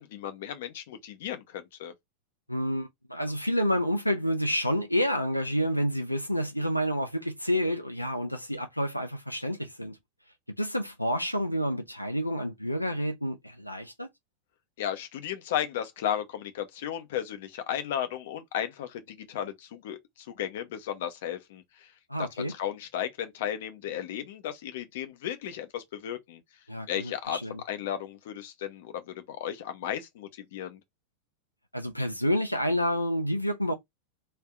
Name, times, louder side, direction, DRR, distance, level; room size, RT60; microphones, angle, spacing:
voice 1, 0.0-1.9 14.8-20.0 20.3-21.6 22.2-26.4 26.9-30.8, left 10 dB, 55° left, 0.7 m, -34 dB
voice 2, 2.5-10.0 10.6-14.1 22.1-22.5 26.7-27.6 31.7-33.7, equal, 90° left, 0.5 m, -29 dB
2.5 x 2.2 x 3.6 m
figure-of-eight pair, 90°, 0 cm